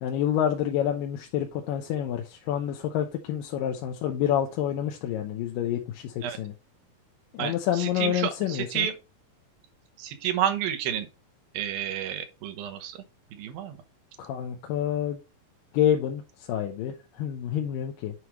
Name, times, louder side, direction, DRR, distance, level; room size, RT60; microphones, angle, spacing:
voice 1, 0.0-6.5 7.3-8.9 14.2-15.2 15.7-16.2 16.5-18.1, left 10 dB, 75° left, 2.3 m, -28 dB
voice 2, 7.4-8.9 10.0-11.1 11.5-13.0 13.3-13.8, right 10 dB, 80° right, 2.7 m, -30 dB
9.4 x 4.8 x 3.0 m
omnidirectional pair, 4.1 m